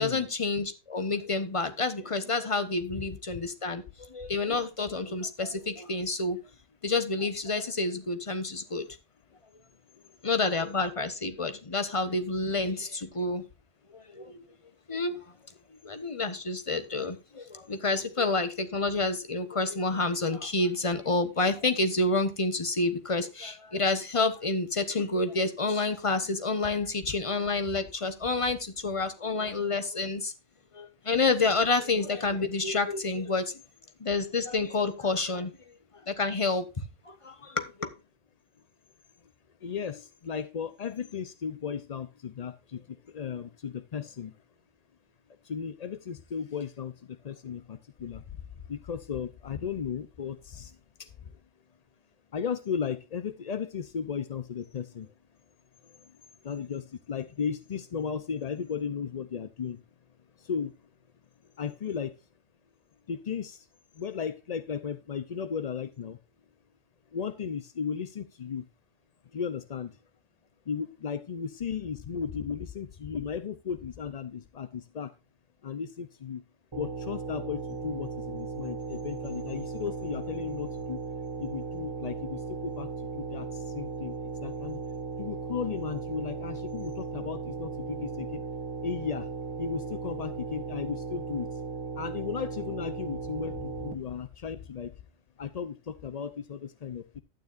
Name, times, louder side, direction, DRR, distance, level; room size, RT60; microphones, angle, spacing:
voice 1, 0.0-6.4 6.8-8.9 10.2-13.4 13.9-14.4 14.9-15.2 15.8-30.3 30.7-33.5 34.0-35.5 36.1-37.9, left 3 dB, 25° left, 1.0 m, -29 dB
voice 2, 39.6-44.4 45.4-48.4 48.7-51.4 52.3-55.1 55.8-56.1 56.4-59.8 60.4-60.7 61.6-62.1 63.1-63.7 64.0-66.2 67.1-68.7 69.3-70.0 70.7-75.1 75.6-76.4 76.8-81.0 81.4-84.2 84.4-84.8 85.2-88.4 88.8-89.3 89.6-91.6 92.0-94.9 95.4-97.2, left 7 dB, 55° left, 0.4 m, -35 dB
sound 1, 76.7-93.9, right 4 dB, 25° right, 0.6 m, -37 dB
12.0 x 9.2 x 2.5 m
omnidirectional pair, 1.4 m